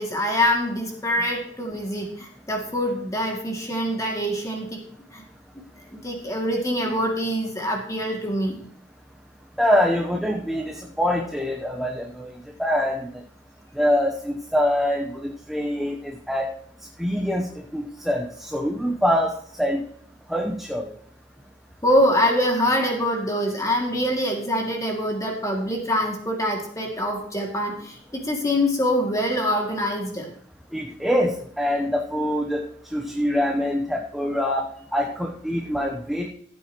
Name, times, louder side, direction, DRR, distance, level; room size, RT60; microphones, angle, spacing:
voice 1, 0.0-4.8 5.1-5.2 5.9-8.6 21.8-30.3, equal, 20° left, 1 dB, 2.3 m, -24 dB
voice 2, 9.6-12.3 12.6-13.2 13.7-16.5 17.0-19.8 20.3-20.9 30.7-32.6 32.9-36.3, equal, ahead, 1 dB, 0.8 m, -24 dB
15.0 x 8.7 x 3.0 m, 0.64 s
head